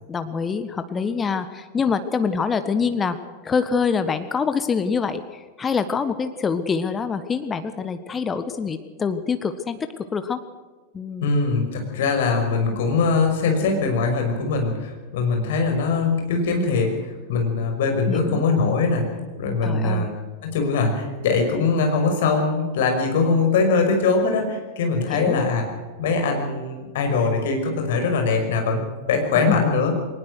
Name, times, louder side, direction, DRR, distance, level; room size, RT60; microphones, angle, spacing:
voice 1, 0.1-3.2 3.4-10.4 10.9-11.3 18.1-18.4 19.6-20.1 25.1-25.4 29.3-29.7, left 5 dB, 20° left, 10 dB, 1.3 m, -25 dB
voice 2, 11.2-19.0 19.4-20.1 20.4-25.6 26.0-28.8 29.1-29.9, left 4 dB, 55° left, 4 dB, 5.6 m, -22 dB
21.0 x 20.0 x 6.5 m, 1.3 s
figure-of-eight pair, 90°, 0 cm